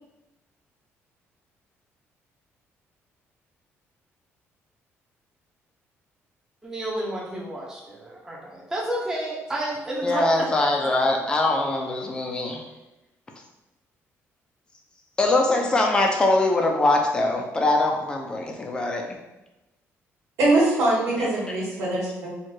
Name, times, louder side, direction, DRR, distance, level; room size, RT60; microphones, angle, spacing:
voice 1, 6.6-10.5 10.8-10.9, right 1 dB, 10° right, -5 dB, 0.9 m, -31 dB
voice 2, 10.0-12.6 15.2-19.2 21.2-21.3, left 2 dB, 15° left, 2 dB, 0.6 m, -22 dB
voice 3, 20.4-22.3, right 2 dB, 70° right, -6 dB, 1.7 m, -22 dB
4.5 x 2.5 x 4.7 m, 0.98 s
cardioid pair, 175°, 5 cm